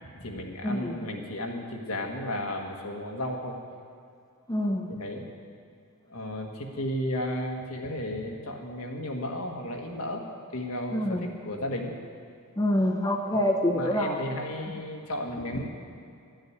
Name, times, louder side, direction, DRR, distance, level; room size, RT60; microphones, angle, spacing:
voice 1, 0.0-3.6 4.9-5.2 6.1-10.2 10.5-11.9 13.7-15.7, left 1 dB, 80° left, 1 dB, 1.5 m, -34 dB
voice 2, 0.6-1.0 4.5-4.9 10.9-11.2 12.6-14.1, left 1 dB, 15° left, 1 dB, 0.7 m, -26 dB
12.5 x 6.5 x 9.6 m, 2.4 s
head